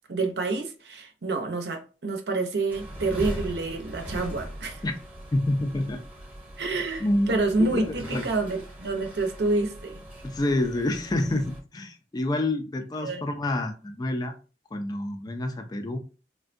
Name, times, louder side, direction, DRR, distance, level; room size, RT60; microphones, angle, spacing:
voice 1, 0.1-4.8 6.6-10.0 13.0-13.2, right 3 dB, 65° right, 0.6 m, -28 dB
sound 1, 2.7-11.6, equal, 10° right, 0.8 m, -40 dB
voice 2, 5.3-6.0 7.0-8.2 10.2-14.3 14.7-16.0, left 1 dB, 25° left, 0.3 m, -28 dB
3.4 x 2.2 x 2.5 m
head